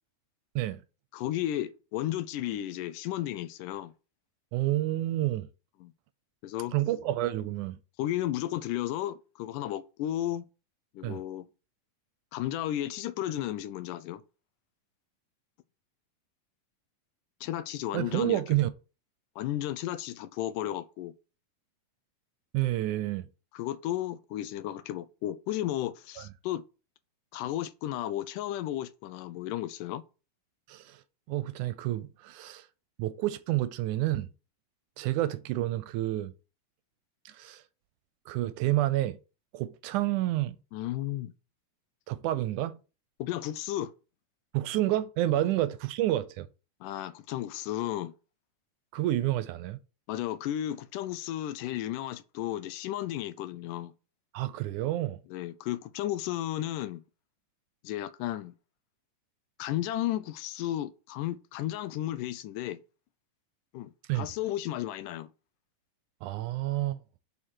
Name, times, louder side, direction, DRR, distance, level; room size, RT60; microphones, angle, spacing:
voice 1, 1.1-3.9 5.8-5.9 6.4-6.7 8.0-10.5 10.9-11.5 12.3-14.2 17.4-18.4 19.4-21.1 23.5-26.6 27.3-30.0 40.7-41.3 43.2-43.9 46.8-48.1 50.1-53.9 55.3-57.0 57.8-58.5 59.6-62.8 63.7-65.3, left 13 dB, 85° left, 2.2 m, -33 dB
voice 2, 4.5-5.5 6.7-7.8 11.0-11.2 17.9-18.7 22.5-23.3 30.7-31.0 31.3-32.7 33.0-34.3 35.0-36.3 37.3-37.6 38.3-39.2 39.5-40.6 42.1-42.8 44.5-46.5 48.9-49.8 54.3-55.2 64.1-64.3 66.2-67.0, right 15 dB, 80° right, 2.0 m, -29 dB
6.5 x 5.6 x 4.6 m
omnidirectional pair, 3.7 m